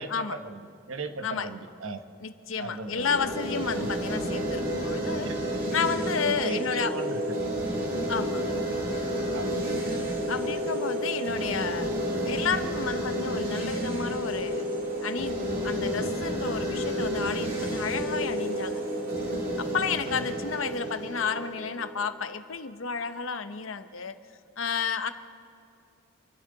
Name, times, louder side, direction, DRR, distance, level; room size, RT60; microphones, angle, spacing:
voice 1, 0.0-2.0 2.6-3.3 3.8-3.9 5.2-5.4 6.2-7.4 9.3-9.6 20.0-20.3, right 2 dB, 85° right, 8 dB, 1.1 m, -38 dB
voice 2, 2.2-5.3 5.7-6.9 8.1-8.4 10.3-11.9 12.2-14.7 15.0-15.4 15.6-18.8 19.2-24.1 24.6-25.1, left 6 dB, 80° left, 10 dB, 0.8 m, -31 dB
sound 1, 3.0-22.1, equal, 45° right, 2.6 m, -30 dB
27.5 x 12.0 x 3.9 m, 2.7 s
head